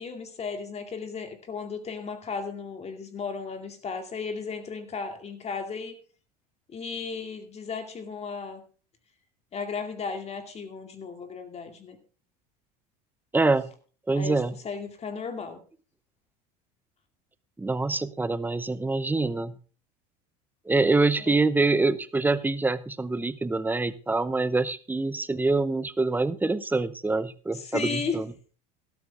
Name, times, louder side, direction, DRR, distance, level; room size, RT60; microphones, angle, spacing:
voice 1, 0.0-6.0 6.7-8.6 9.5-12.0 14.1-14.4 14.6-15.6 21.3-21.4 27.5-28.2, left 5 dB, 30° left, 6 dB, 2.4 m, -35 dB
voice 2, 13.3-13.7 14.1-14.5 17.6-19.6 20.7-28.3, right 3 dB, 10° right, 15 dB, 0.8 m, -25 dB
13.0 x 12.0 x 3.5 m, 0.37 s
supercardioid pair, 100°, 21 cm